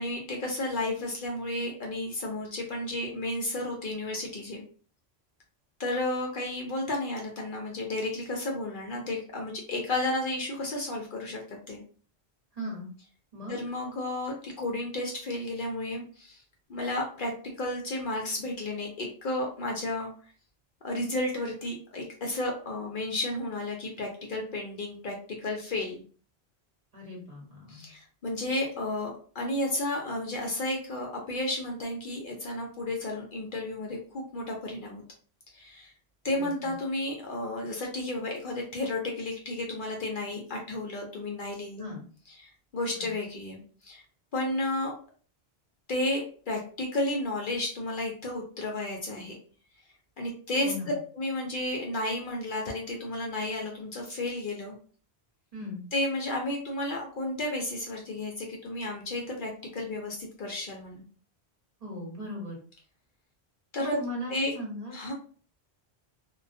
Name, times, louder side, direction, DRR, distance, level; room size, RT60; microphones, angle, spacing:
voice 1, 0.0-4.6 5.8-11.8 13.5-16.4 16.7-17.3 17.6-20.1 20.8-25.2 25.4-26.0 27.7-35.0 35.5-35.9 36.2-41.9 42.3-44.0 44.3-44.9 45.9-49.4 50.2-54.7 55.9-61.0 63.7-64.0 64.3-64.5 64.9-65.1, left 1 dB, 60° left, -1 dB, 0.7 m, -32 dB
voice 2, 12.5-12.9 13.3-13.6 26.9-27.9 36.3-36.7 41.8-42.1 42.9-43.1 50.6-50.9 55.5-55.8 61.8-62.6 63.8-64.9, left 1 dB, 40° right, -3 dB, 0.9 m, -38 dB
2.3 x 2.2 x 2.5 m, 0.43 s
omnidirectional pair, 1.1 m